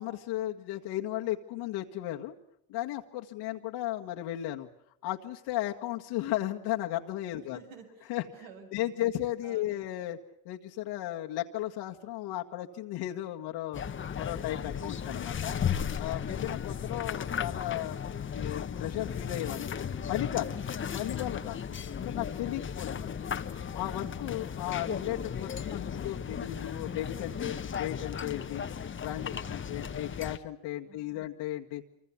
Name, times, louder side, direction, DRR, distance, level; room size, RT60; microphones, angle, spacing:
voice 1, 0.0-2.3 2.7-4.7 5.0-7.6 8.1-8.2 8.7-10.2 10.5-13.8 14.2-15.6 16.0-18.0 18.3-20.5 20.9-21.6 22.0-23.2 23.7-28.7 29.0-31.8, left 14 dB, 70° left, 0 dB, 1.9 m, -35 dB
voice 2, 7.4-9.1 9.4-9.8 14.8-15.4 16.2-16.8 29.3-30.2 30.9-31.3, right 6 dB, 80° right, 5 dB, 7.3 m, -53 dB
sound 1, 13.7-30.4, left 7 dB, 25° left, 1.3 m, -35 dB
26.5 x 25.0 x 7.2 m, 0.76 s
supercardioid pair, 110°, 44 cm